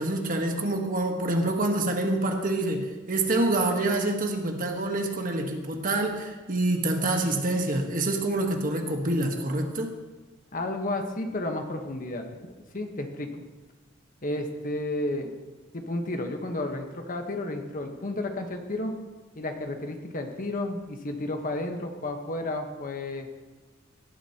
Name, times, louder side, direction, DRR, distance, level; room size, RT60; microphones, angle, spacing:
voice 1, 0.0-10.0, right 2 dB, 45° right, 3 dB, 1.4 m, -26 dB
voice 2, 10.5-13.5 14.2-15.3 15.7-19.0 19.3-23.3, left 2 dB, 40° left, 4 dB, 1.3 m, -32 dB
17.5 x 11.0 x 3.0 m, 1.2 s
head